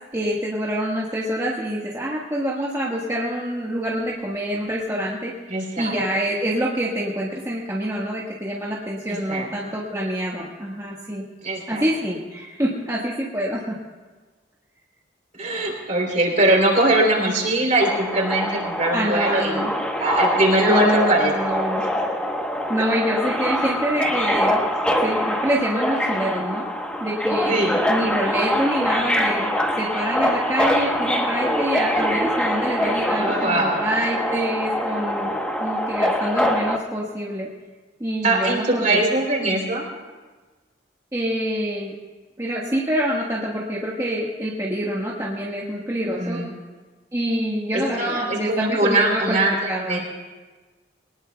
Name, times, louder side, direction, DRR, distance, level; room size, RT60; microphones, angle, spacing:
voice 1, 0.1-5.3 5.8-11.2 11.7-13.8 18.9-19.7 20.7-21.8 22.7-24.6 25.0-26.6 27.0-37.5 38.0-39.0 41.1-41.9 42.4-46.4 47.1-49.4 49.7-50.0, equal, 15° right, -5 dB, 1.5 m, -26 dB
voice 2, 5.5-6.0 9.1-9.5 11.4-11.9 15.3-19.7 20.0-21.3 21.8-21.9 24.7-24.8 27.4-27.8 33.1-33.8 38.2-39.9 46.1-46.5 47.7-50.0, right 2 dB, 45° right, 0 dB, 3.4 m, -21 dB
Subway metro underground, 17.8-36.8, equal, 5° left, 1.1 m, -24 dB
23.0 x 19.0 x 2.3 m, 1.3 s
head